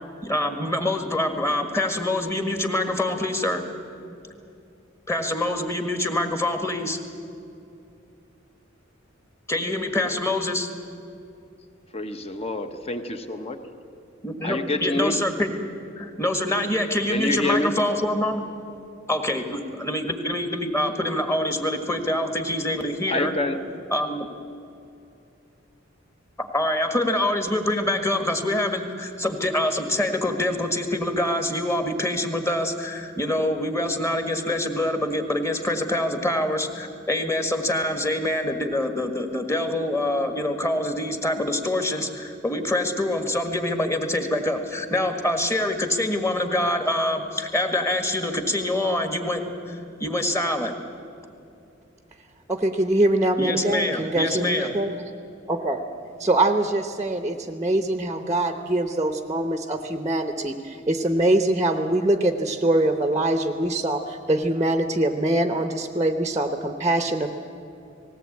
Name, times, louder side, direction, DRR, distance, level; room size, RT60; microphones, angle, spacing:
voice 1, 0.2-3.6 5.1-7.0 9.5-10.7 14.2-15.5 16.0-18.4 19.1-23.3 23.9-24.3 26.4-50.7 53.4-54.7, left 1 dB, 15° left, 1.6 m, -25 dB
voice 2, 11.9-13.6 14.4-15.2 17.1-17.7 23.1-23.6, left 2 dB, 30° left, 1.2 m, -27 dB
voice 3, 52.5-54.9 55.5-55.8 56.2-67.3, right 1 dB, 15° right, 0.8 m, -23 dB
19.0 x 17.5 x 8.6 m
head